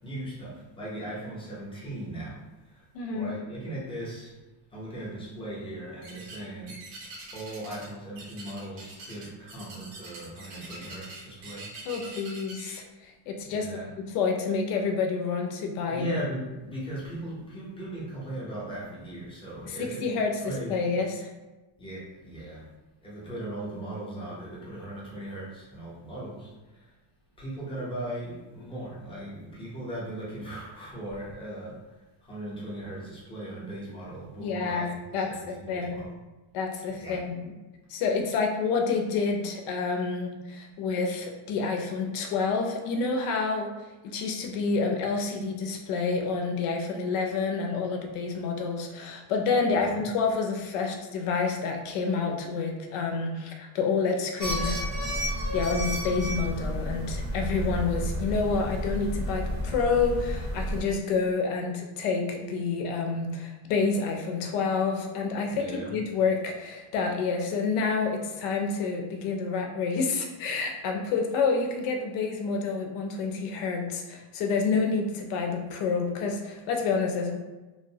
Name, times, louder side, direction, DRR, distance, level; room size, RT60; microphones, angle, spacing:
voice 1, 0.0-2.4 3.1-4.3 4.7-6.8 7.3-11.7 13.5-13.9 15.9-20.1 20.5-20.8 21.8-22.6 23.0-26.5 27.4-31.8 32.3-35.0 35.3-36.1 37.0-37.2 65.5-65.9, right 1 dB, 10° left, -7 dB, 0.6 m, -38 dB
voice 2, 2.9-3.3 11.9-16.2 19.6-21.3 34.4-36.0 36.5-37.5 37.9-43.7 44.0-54.8 55.5-77.3, left 4 dB, 85° left, 3 dB, 0.7 m, -28 dB
sound 1, 6.0-6.4 6.7-7.9 8.2-12.8, right 3 dB, 75° right, 1.0 m, -44 dB
sound 2, 54.4-60.8, equal, 45° right, 0.7 m, -31 dB
3.0 x 2.0 x 2.7 m, 1.1 s
cardioid pair, 150°, 50 cm